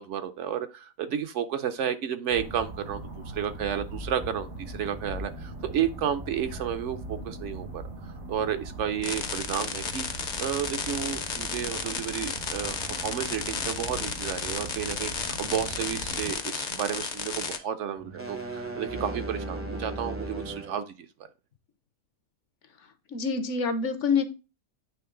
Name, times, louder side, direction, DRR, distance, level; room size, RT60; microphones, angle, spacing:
voice 1, 0.0-7.8 8.3-10.0 10.4-12.8 13.0-20.9, right 9 dB, 65° right, 9 dB, 0.8 m, -32 dB
sound 1, 2.3-16.3, right 1 dB, 85° right, 2.1 m, -40 dB
sound 2, 9.0-17.6, left 5 dB, 45° left, 0.6 m, -33 dB
sound 3, 18.0-20.8, right 2 dB, 15° right, 0.5 m, -36 dB
voice 2, 23.1-24.2, left 5 dB, 65° left, 9 dB, 1.0 m, -26 dB
8.6 x 3.1 x 3.7 m, 0.30 s
omnidirectional pair, 1.4 m